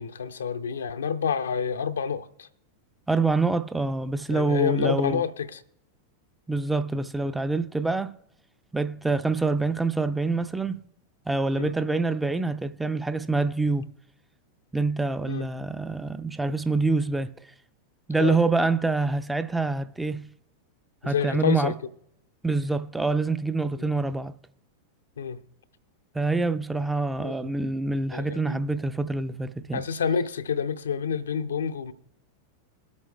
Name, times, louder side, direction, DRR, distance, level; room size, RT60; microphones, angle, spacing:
voice 1, 0.0-2.5 4.3-5.6 11.6-11.7 15.3-15.5 18.2-18.4 21.0-21.7 23.7-23.9 25.2-25.4 27.2-27.5 28.1-28.6 29.7-31.9, left 7 dB, 65° left, 0.6 m, -28 dB
voice 2, 3.1-5.2 6.5-8.2 8.7-10.8 11.3-13.9 14.7-17.3 18.1-20.3 21.0-21.7 22.4-24.3 26.1-29.8, right 3 dB, 5° right, 0.5 m, -26 dB
22.0 x 8.3 x 2.3 m
figure-of-eight pair, 90°, 0 cm